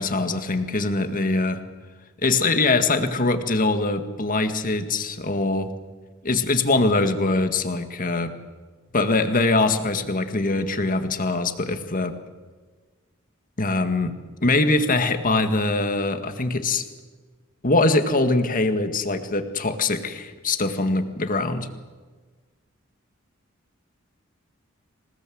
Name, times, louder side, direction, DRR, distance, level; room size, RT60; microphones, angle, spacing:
voice 1, 0.0-1.6 2.2-5.7 6.2-8.3 8.9-12.2 13.6-14.1 14.4-16.9 17.6-21.7, left 2 dB, 40° left, 8 dB, 1.9 m, -23 dB
27.0 x 18.5 x 7.9 m, 1.4 s
head